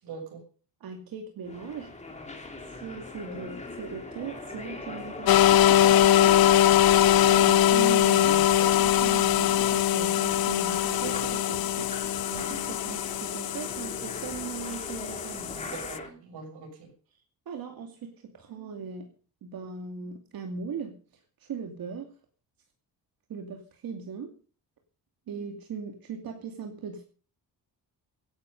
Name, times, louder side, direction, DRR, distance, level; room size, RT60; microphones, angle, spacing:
voice 1, 0.0-0.4 8.2-8.6 15.5-16.9, right 4 dB, 85° right, 4 dB, 6.5 m, -42 dB
voice 2, 0.8-1.9 2.7-6.5 7.3-15.7 16.2-16.3 17.5-19.1 19.4-22.1 23.3-24.4 25.3-27.0, right 5 dB, 65° right, 4 dB, 2.5 m, -39 dB
sound 1, 1.4-16.1, left 2 dB, 15° left, 2.7 m, -40 dB
sound 2, 5.3-16.0, left 11 dB, 65° left, 0.8 m, -22 dB
17.0 x 11.0 x 5.4 m, 0.39 s
cardioid pair, 150°, 39 cm